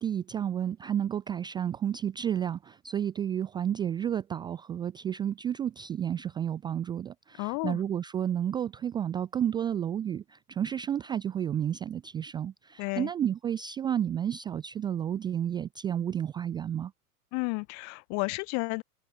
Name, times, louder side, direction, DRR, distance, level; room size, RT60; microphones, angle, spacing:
voice 1, 0.0-16.9, right 9 dB, 10° right, 0.4 m, -31 dB
voice 2, 7.4-7.8 12.8-13.1 17.3-18.8, left 33 dB, 35° left, 1.2 m, -32 dB
figure-of-eight pair, 105°, 46 cm